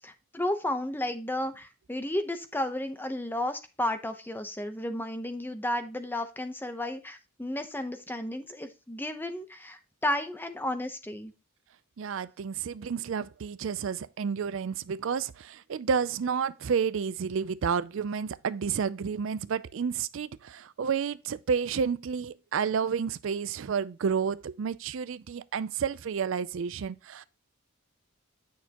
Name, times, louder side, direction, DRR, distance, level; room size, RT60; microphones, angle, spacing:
voice 1, 0.0-11.3, left 1 dB, 10° left, 0.8 m, -33 dB
voice 2, 12.0-27.2, right 6 dB, 65° right, 0.4 m, -30 dB
9.3 x 6.4 x 2.9 m
head